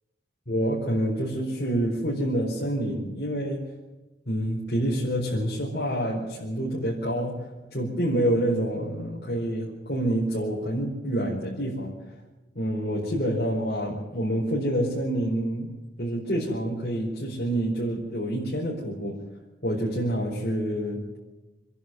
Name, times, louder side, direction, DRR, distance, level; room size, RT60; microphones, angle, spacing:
voice 1, 0.5-3.7 4.3-11.9 12.5-15.7 16.0-19.2 19.6-21.2, right 1 dB, 60° left, -5 dB, 4.7 m, -27 dB
26.5 x 10.5 x 9.3 m, 1.1 s
head